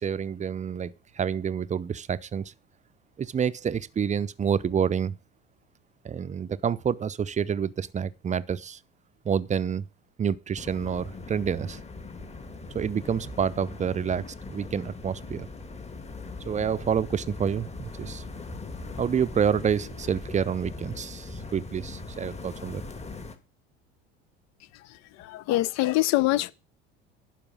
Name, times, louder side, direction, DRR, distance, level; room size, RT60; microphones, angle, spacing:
voice 1, 0.0-2.5 3.2-5.2 6.0-8.8 9.2-9.9 10.2-11.8 12.7-15.5 16.5-18.2 19.0-22.8, right 7 dB, 20° right, 0.6 m, -28 dB
sound 1, 10.6-23.4, left 3 dB, 20° left, 1.8 m, -40 dB
voice 2, 24.7-26.5, left 17 dB, 55° left, 0.7 m, -25 dB
11.5 x 4.9 x 7.1 m
hypercardioid pair, 70°, 32 cm